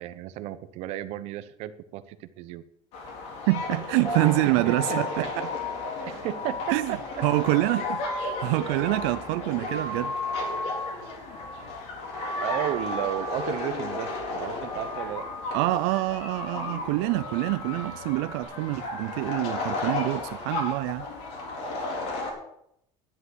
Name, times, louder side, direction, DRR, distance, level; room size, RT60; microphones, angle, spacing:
voice 1, 0.0-2.6 4.4-5.3 6.0-7.0 7.8-7.9 8.5-9.0 12.4-15.3, right 13 dB, 55° right, 0.9 m, -34 dB
sound 1, 2.9-22.3, left 3 dB, 60° left, 4.3 m, -34 dB
voice 2, 3.5-5.5 6.7-7.0 7.2-10.1 15.5-21.1, right 19 dB, 85° right, 0.5 m, -26 dB
sound 2, 4.1-11.0 11.3-11.8 12.1-13.5 13.8-14.3 14.6-16.0 16.4-16.7 17.1-18.4, left 1 dB, 30° left, 3.1 m, -36 dB
11.0 x 8.1 x 7.8 m
cardioid pair, 160°, 13 cm